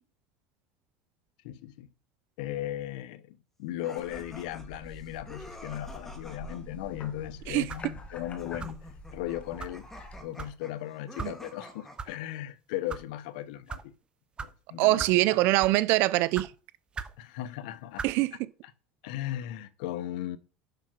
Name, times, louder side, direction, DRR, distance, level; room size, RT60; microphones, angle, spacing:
voice 1, 1.4-1.9 2.4-8.8 9.1-9.9 10.2-13.9 14.4-15.0 17.2-18.1 19.0-20.4, left 13 dB, 80° left, 0.8 m, -37 dB
sound 1, 3.8-6.6 8.4-12.2, left 1 dB, 5° left, 2.1 m, -49 dB
sound 2, 4.0-10.2, left 1 dB, 30° left, 1.7 m, -46 dB
sound 3, 7.7-7.9 8.6-8.9 9.6-9.8 10.4-10.6 11.2-11.3 12.0-12.1 12.7-13.0 13.7-13.8 14.4-14.5 15.0-15.2 15.6-15.8 16.3-16.5 16.9-17.2 18.0-18.2, right 5 dB, 25° right, 0.7 m, -38 dB
voice 2, 14.8-16.5 18.0-18.4, right 18 dB, 65° right, 0.5 m, -23 dB
6.8 x 5.9 x 6.1 m
supercardioid pair, 115°, 4 cm